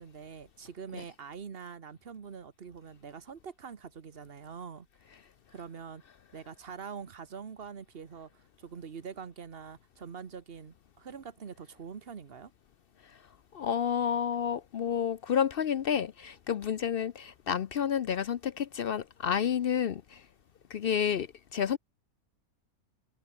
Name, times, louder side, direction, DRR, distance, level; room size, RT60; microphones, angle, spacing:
voice 1, 0.0-4.9 5.5-6.0 6.3-12.5, right 6 dB, 45° right, 1.3 m, -44 dB
voice 2, 13.5-20.2 20.7-21.8, left 8 dB, 60° left, 0.6 m, -30 dB
omnidirectional pair, 1.6 m